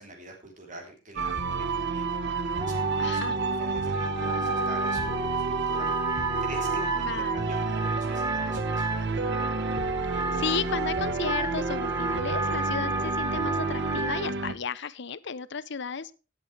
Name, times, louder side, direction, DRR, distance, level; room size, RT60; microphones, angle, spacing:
voice 1, 0.0-1.4 1.7-2.1 2.4-9.1, right 2 dB, 40° right, 2 dB, 3.3 m, -45 dB
sound 1, 1.2-14.5, right 4 dB, 65° right, 1.1 m, -30 dB
Wind instrument woodwind instrument, 2.6-14.2, right 2 dB, 20° right, 0.7 m, -32 dB
voice 2, 3.0-3.4 7.0-7.5 10.1-16.1, left 6 dB, 65° left, 17 dB, 0.7 m, -34 dB
18.0 x 8.1 x 3.3 m, 0.33 s
head